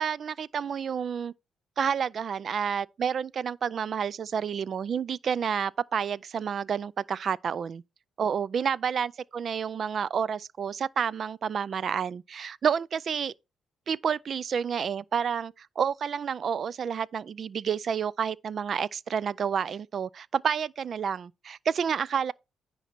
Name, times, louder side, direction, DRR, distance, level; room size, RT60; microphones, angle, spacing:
voice 1, 0.0-1.3 1.8-7.8 8.2-13.3 13.9-22.3, right 7 dB, 50° right, 0.3 m, -29 dB
10.0 x 4.0 x 4.5 m
cardioid pair, 90°, 0 cm